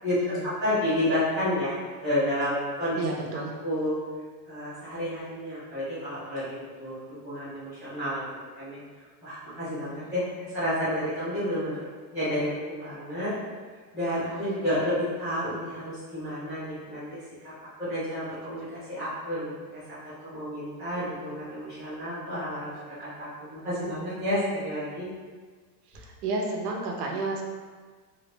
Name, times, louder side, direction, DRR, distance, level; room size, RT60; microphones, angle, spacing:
voice 1, 0.0-1.8 2.0-3.0 3.6-3.9 4.5-8.2 8.6-8.8 9.2-13.3 13.9-17.2 17.6-20.0 20.2-22.7 23.0-25.1, left 1 dB, 5° left, -16 dB, 0.5 m, -30 dB
voice 2, 3.0-3.5 25.9-27.4, right 3 dB, 65° right, 0 dB, 0.6 m, -31 dB
3.2 x 2.3 x 3.2 m, 1.5 s
supercardioid pair, 175°, 50 cm